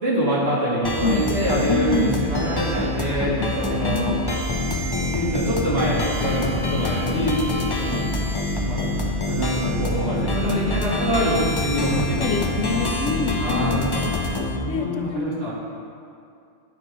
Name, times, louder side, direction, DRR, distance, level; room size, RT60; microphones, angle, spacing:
voice 1, 0.0-4.0 4.6-8.0 8.6-8.9 9.2-12.3 12.7-12.8 13.4-13.9 14.6-15.5, right 1 dB, 65° right, -9 dB, 2.3 m, -25 dB
sound 1, 0.8-14.6, left 2 dB, 35° left, 0.4 m, -26 dB
voice 2, 1.7-2.3 3.4-4.2 12.2-13.9 14.7-15.3, left 4 dB, 85° left, 4 dB, 0.9 m, -26 dB
10.5 x 4.6 x 2.9 m, 2.5 s
omnidirectional pair, 1.2 m